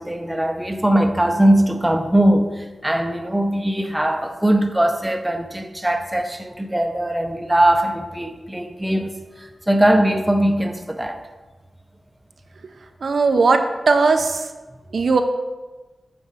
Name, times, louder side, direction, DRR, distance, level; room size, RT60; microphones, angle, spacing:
voice 1, 0.0-9.1 9.4-11.2, right 1 dB, 10° right, 0.6 m, -20 dB
voice 2, 13.0-14.5 14.9-15.2, right 4 dB, 75° right, 0.5 m, -18 dB
8.2 x 4.2 x 5.0 m
wide cardioid pair, 100°, 0 cm